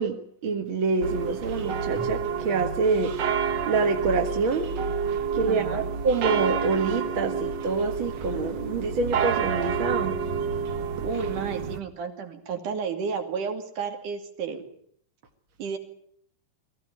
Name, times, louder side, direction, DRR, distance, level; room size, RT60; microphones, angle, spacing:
voice 1, 0.0-3.1 3.7-4.7 5.3-10.2, right 4 dB, 45° right, 3 dB, 2.2 m, -26 dB
sound 1, 1.0-11.8, right 6 dB, 60° right, 1.1 m, -29 dB
voice 2, 5.5-5.9 11.0-14.6 15.6-15.8, right 5 dB, 80° right, 5 dB, 4.2 m, -32 dB
23.0 x 16.0 x 9.2 m, 0.65 s
omnidirectional pair, 3.6 m